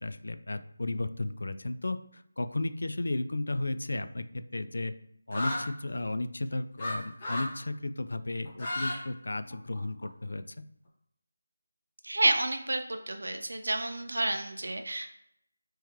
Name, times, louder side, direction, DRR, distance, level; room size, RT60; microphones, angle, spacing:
voice 1, 0.0-4.9 5.3-10.6, left 2 dB, 70° left, 11 dB, 0.3 m, -34 dB
sound 1, 5.3-5.6 6.8-6.9 7.2-7.5 8.4-9.0 9.3-10.0, left 1 dB, 20° left, 1.0 m, -33 dB
voice 2, 12.0-15.1, right 2 dB, 75° right, 5 dB, 0.4 m, -30 dB
3.5 x 3.0 x 3.0 m, 0.72 s
figure-of-eight pair, 175°, 0 cm